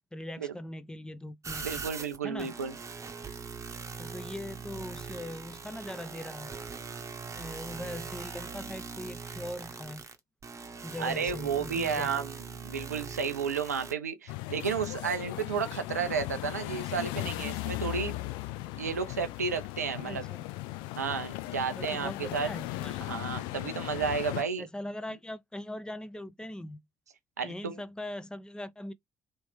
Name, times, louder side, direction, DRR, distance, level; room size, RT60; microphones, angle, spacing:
voice 1, 0.1-1.8 2.2-2.5 4.0-6.6 7.3-10.0 10.8-12.2 20.0-20.4 21.8-23.0 24.6-26.8 27.4-28.9, left 1 dB, 10° left, 0.6 m, -41 dB
sound 1, 1.4-13.9, right 5 dB, 35° right, 0.9 m, -41 dB
voice 2, 1.6-2.7 11.0-18.2 18.8-20.2 21.0-22.5 23.0-24.7 27.4-27.8, right 6 dB, 85° right, 0.4 m, -32 dB
sound 2, 14.3-24.4, left 18 dB, 65° left, 0.3 m, -37 dB
3.1 x 3.0 x 3.3 m
figure-of-eight pair, 45°, 8 cm